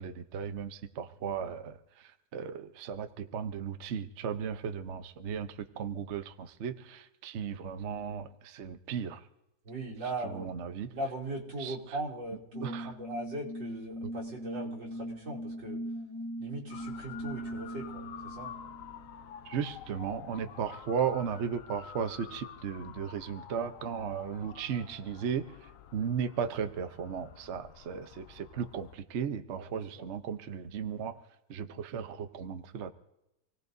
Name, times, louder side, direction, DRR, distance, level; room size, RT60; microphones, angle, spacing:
voice 1, 0.0-9.3 10.2-10.9 11.6-11.8 12.6-12.9 19.4-31.2 31.5-32.9, right 7 dB, 50° right, 8 dB, 0.9 m, -36 dB
voice 2, 9.6-10.5 10.9-15.8 16.4-18.5 29.6-30.0, right 2 dB, 85° right, -4 dB, 3.6 m, -39 dB
sound 1, 12.5-19.6, equal, 25° left, 0.5 m, -40 dB
Motor vehicle (road) / Siren, 16.7-29.0, left 9 dB, 60° left, 0.9 m, -49 dB
27.5 x 17.5 x 2.7 m, 0.88 s
omnidirectional pair, 1.9 m